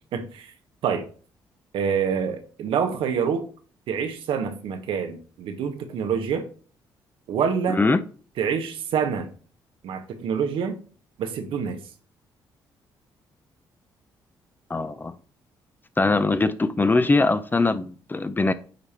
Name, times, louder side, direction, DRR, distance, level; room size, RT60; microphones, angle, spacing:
voice 1, 0.1-0.5 0.8-1.1 1.7-3.5 3.9-6.5 7.3-7.8 8.4-9.3 9.8-10.8 11.2-11.8, right 7 dB, 75° right, 1.1 m, -26 dB
voice 2, 7.7-8.0 14.7-15.1 16.0-18.5, left 3 dB, 20° left, 0.7 m, -22 dB
9.2 x 3.5 x 4.3 m
supercardioid pair, 70°, 9 cm